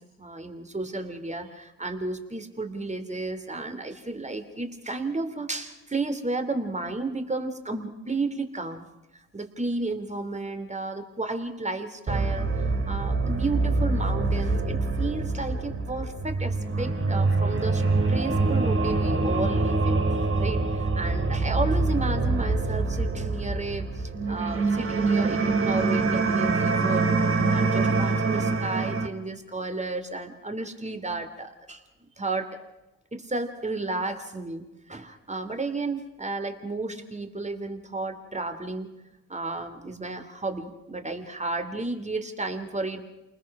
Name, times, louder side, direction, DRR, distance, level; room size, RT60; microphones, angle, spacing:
voice 1, 0.2-8.9 9.3-20.0 20.4-27.1 27.5-32.7 33.1-38.9 39.3-43.1, right 3 dB, 20° right, 7 dB, 3.1 m, -32 dB
sound 1, 12.1-29.1, right 3 dB, 40° right, 2.6 m, -25 dB
28.5 x 20.0 x 6.1 m, 0.99 s
supercardioid pair, 60°, 34 cm